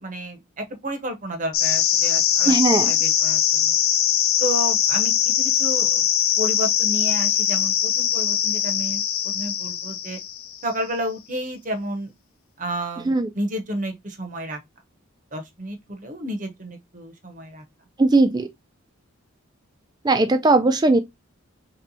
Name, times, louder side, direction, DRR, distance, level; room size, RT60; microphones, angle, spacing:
voice 1, 0.0-3.7 4.4-6.1 6.4-10.2 10.6-12.1 12.6-14.6 15.3-17.6, equal, 35° right, 0.8 m, -31 dB
sound 1, 1.5-10.7, left 10 dB, 70° left, 0.6 m, -21 dB
voice 2, 2.4-3.0 13.0-13.3 18.0-18.5 20.0-21.0, right 2 dB, 20° right, 0.4 m, -18 dB
3.1 x 2.9 x 4.0 m
head